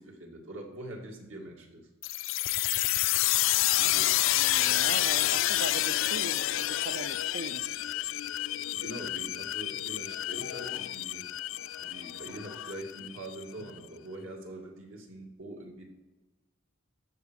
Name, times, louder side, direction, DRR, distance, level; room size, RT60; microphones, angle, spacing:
voice 1, 0.0-1.9 3.8-4.2 8.8-11.3 11.8-15.9, right 1 dB, 75° right, 0 dB, 2.5 m, -43 dB
sound 1, 2.0-13.4, left 16 dB, 65° left, 0.3 m, -29 dB
voice 2, 3.8-7.6, right 4 dB, 55° right, 10 dB, 0.5 m, -41 dB
14.0 x 5.9 x 6.4 m, 1.2 s
head